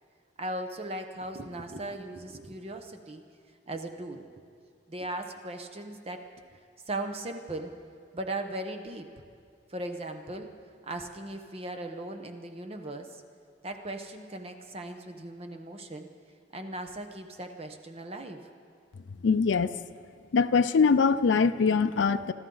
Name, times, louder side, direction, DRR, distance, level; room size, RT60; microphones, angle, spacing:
voice 1, 0.4-3.2 3.7-4.3 4.9-6.6 6.9-7.7 8.1-9.1 9.7-10.5 10.8-13.2 13.6-16.1 16.5-18.5, right 1 dB, 30° right, 6 dB, 1.0 m, -38 dB
voice 2, 19.2-19.7 20.3-22.3, left 5 dB, 70° left, 10 dB, 0.4 m, -23 dB
26.5 x 12.5 x 3.9 m, 2.3 s
head